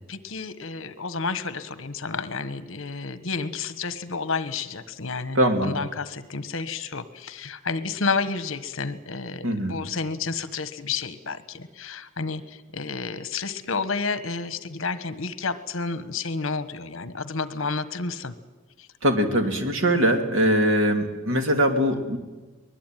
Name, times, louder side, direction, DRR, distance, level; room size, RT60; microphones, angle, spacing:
voice 1, 0.0-18.3 18.8-18.9, left 4 dB, 65° left, 13 dB, 1.3 m, -31 dB
voice 2, 5.3-5.7 9.4-9.8 19.0-22.2, equal, 65° right, 5 dB, 3.1 m, -22 dB
23.5 x 20.5 x 9.2 m, 1.2 s
head